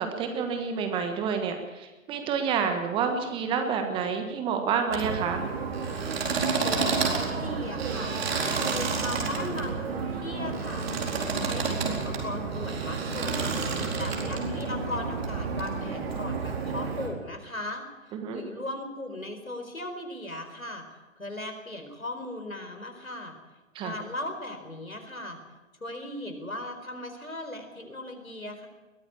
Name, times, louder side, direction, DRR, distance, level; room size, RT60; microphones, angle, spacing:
voice 1, 0.0-5.5 18.1-18.4 23.7-24.0, right 6 dB, 10° right, 7 dB, 1.2 m, -29 dB
sound 1, 4.9-17.1, right 4 dB, 50° right, 4.4 m, -30 dB
voice 2, 6.6-8.1 8.5-10.9 11.3-20.8 21.2-23.3 23.8-25.4 25.8-28.7, left 1 dB, 85° left, 5 dB, 4.3 m, -38 dB
21.5 x 14.5 x 8.6 m, 1.2 s
figure-of-eight pair, 130°, 40 cm